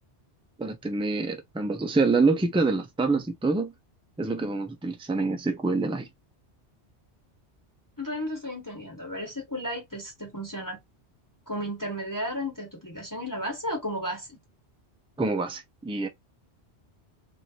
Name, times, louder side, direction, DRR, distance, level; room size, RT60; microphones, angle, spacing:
voice 1, 0.6-3.7 4.2-6.1 15.2-16.1, right 3 dB, 10° right, 0.3 m, -26 dB
voice 2, 8.0-10.8 11.5-14.4, equal, 20° left, 1.2 m, -33 dB
3.0 x 2.6 x 2.6 m
omnidirectional pair, 1.1 m